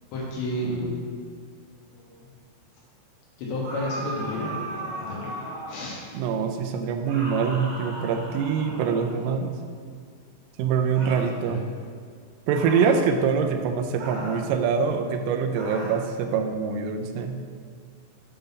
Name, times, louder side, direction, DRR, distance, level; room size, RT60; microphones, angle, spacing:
voice 1, 0.1-0.9 1.9-2.2 3.4-5.4 5.7-6.0 11.5-11.6, left 1 dB, 75° left, -4 dB, 3.1 m, -31 dB
sound 1, 3.6-5.9 7.0-9.3 10.9-11.3 12.5-13.0 14.0-14.5 15.5-16.0, right 1 dB, 65° right, 2.2 m, -37 dB
voice 2, 6.1-9.6 10.6-11.6 12.5-17.4, right 6 dB, 85° right, 5 dB, 3.1 m, -24 dB
8.1 x 3.8 x 5.3 m, 2.1 s
omnidirectional pair, 5.6 m